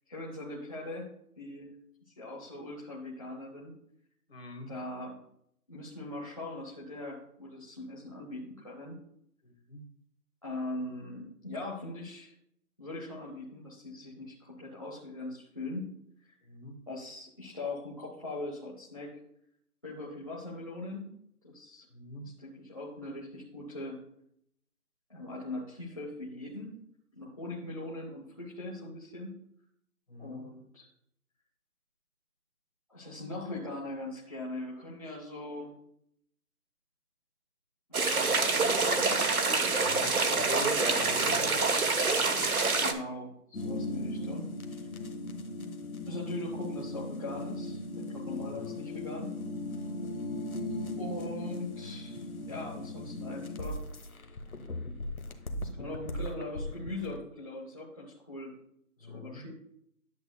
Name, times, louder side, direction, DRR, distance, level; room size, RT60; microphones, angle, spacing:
voice 1, 0.1-1.1 1.4-1.7 2.2-3.7 4.7-5.2 5.7-9.0 10.4-12.3 12.8-15.9 16.2-16.4 16.9-19.2 19.8-21.1 21.4-21.9 22.2-24.0 25.1-26.7 27.1-29.3 30.2-30.9 32.9-35.7 37.9-39.1 40.2-41.8 42.8-44.9 46.1-47.8 48.1-49.3 51.0-53.8 55.8-58.5 59.1-59.5, left 2 dB, 25° left, -6 dB, 0.9 m, -41 dB
voice 2, 4.3-4.7 9.4-9.8 16.4-16.8 21.9-22.3 30.1-30.4 39.8-41.7 48.4-48.8 59.0-59.4, left 2 dB, 40° left, 3 dB, 1.7 m, -42 dB
sound 1, 37.9-42.9, right 3 dB, 70° right, 1.2 m, -26 dB
sound 2, 43.5-57.2, left 1 dB, 65° left, 1.3 m, -38 dB
10.5 x 7.8 x 2.2 m, 0.70 s
figure-of-eight pair, 165°, 46 cm